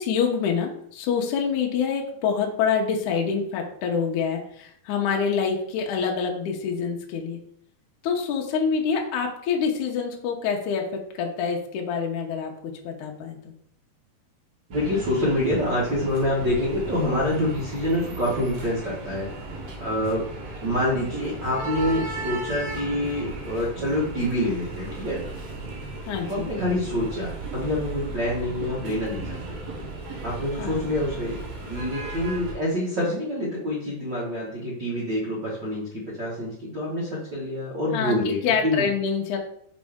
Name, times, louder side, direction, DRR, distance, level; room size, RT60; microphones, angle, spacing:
voice 1, 0.0-7.4 8.0-13.5 26.0-26.5 30.6-30.9 37.9-39.4, left 6 dB, 75° left, 2 dB, 1.8 m, -26 dB
sound 1, 14.7-32.5, right 2 dB, 65° right, 1.7 m, -35 dB
voice 2, 14.7-19.3 19.8-20.2 20.6-25.3 26.3-29.4 30.2-31.4 31.7-38.4 38.6-38.9, left 1 dB, 80° right, -6 dB, 1.0 m, -26 dB
5.4 x 5.2 x 3.6 m, 0.68 s
omnidirectional pair, 4.6 m